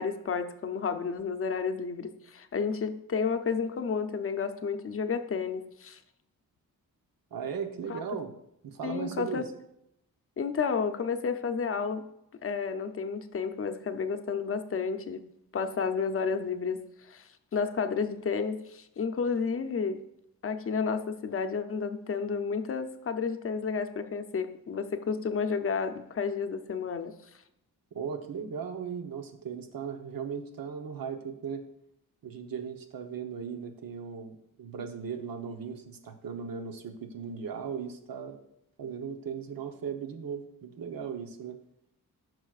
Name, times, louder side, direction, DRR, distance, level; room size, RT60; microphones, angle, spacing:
voice 1, 0.0-6.0 7.9-8.0 8.8-9.4 10.4-12.0 12.4-15.2 15.5-16.8 17.1-20.0 20.4-27.1, left 5 dB, 40° left, 8 dB, 0.6 m, -31 dB
voice 2, 7.3-8.3 8.6-9.5 27.9-31.6 32.2-38.4 38.8-41.6, right 6 dB, 80° right, 6 dB, 1.0 m, -37 dB
14.5 x 6.2 x 2.4 m, 0.80 s
wide cardioid pair, 160°, 34 cm